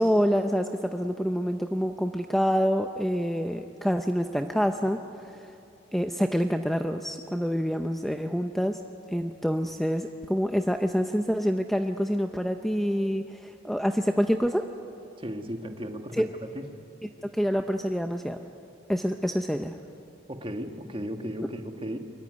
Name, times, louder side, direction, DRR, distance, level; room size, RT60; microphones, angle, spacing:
voice 1, 0.0-5.5 5.9-8.8 9.1-14.7 16.2-16.3 17.3-18.4 18.9-19.8, equal, ahead, 6 dB, 0.6 m, -27 dB
voice 2, 15.2-16.6 20.3-22.0, equal, 25° right, 5 dB, 1.5 m, -35 dB
23.5 x 23.0 x 9.6 m, 2.7 s
head